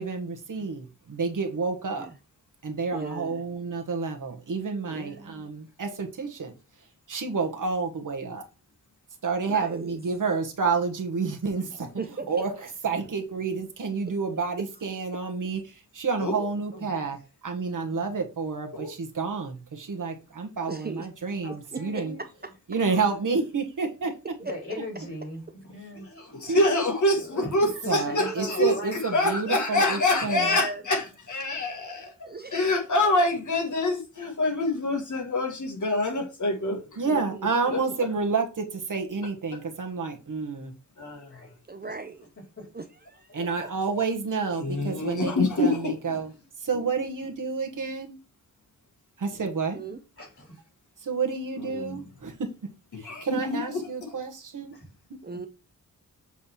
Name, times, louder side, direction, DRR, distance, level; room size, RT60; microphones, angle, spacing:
voice 1, 0.0-2.1 2.6-6.5 7.1-8.4 9.2-11.9 12.3-12.5 12.8-17.2 17.4-22.1 22.7-24.1 26.5-26.8 27.9-30.6 37.0-40.7 43.3-46.3 46.6-48.2 49.2-49.8 51.0-52.5 53.0-54.8 55.1-55.2, right 4 dB, 60° right, 1.3 m, -29 dB
voice 2, 2.9-3.4 4.9-5.5 9.4-10.0 12.0-12.3 14.1-14.2 20.7-21.1 21.5-22.3 24.4-24.5 28.1-28.5 30.3-30.8 32.2-32.8 37.3-37.5 41.7-42.3 42.7-43.7 49.4-50.0 55.2-55.5, right 3 dB, 30° right, 0.6 m, -38 dB
voice 3, 11.6-11.9 12.3-12.4 16.7-17.2 21.4-22.5 22.8-23.2 24.4-26.6 27.1-29.0 31.6-32.1 39.9-40.0 41.2-42.0 42.6-42.8 43.3-43.6 46.0-46.5 50.2-50.5 54.7-54.9, left 1 dB, 40° left, 3.7 m, -41 dB
voice 4, 16.2-16.5 18.7-18.9 26.4-37.2 37.7-37.8 41.0-41.4 44.6-45.9 51.6-52.0 53.0-54.1, left 2 dB, 55° left, 1.5 m, -26 dB
7.2 x 3.3 x 4.3 m
wide cardioid pair, 100°, 35 cm